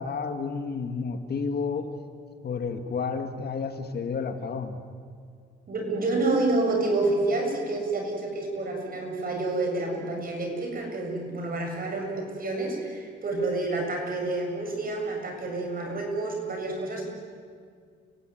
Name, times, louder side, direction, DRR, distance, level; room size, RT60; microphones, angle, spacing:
voice 1, 0.0-1.9 2.4-4.8, left 5 dB, 55° left, 7 dB, 2.3 m, -31 dB
voice 2, 5.7-17.1, right 2 dB, 45° right, 2 dB, 7.5 m, -28 dB
29.5 x 17.0 x 9.4 m, 2.1 s
cardioid pair, 90°, 20 cm